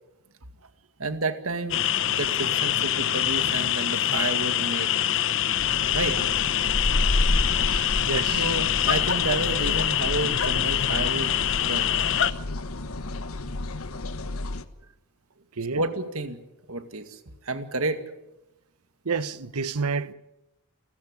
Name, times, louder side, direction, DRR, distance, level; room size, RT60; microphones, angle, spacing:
voice 1, 1.0-4.9 5.9-6.2 8.4-11.4 11.6-11.9 15.7-16.4 16.7-18.0, right 2 dB, 75° right, 2.1 m, -30 dB
sound 1, 1.7-12.3, left 11 dB, 55° left, 0.8 m, -25 dB
sound 2, 5.5-14.6, left 2 dB, 75° left, 1.3 m, -30 dB
voice 2, 7.5-8.5 15.6-15.8 19.0-20.1, right 5 dB, 90° right, 1.1 m, -30 dB
30.0 x 14.0 x 9.8 m
head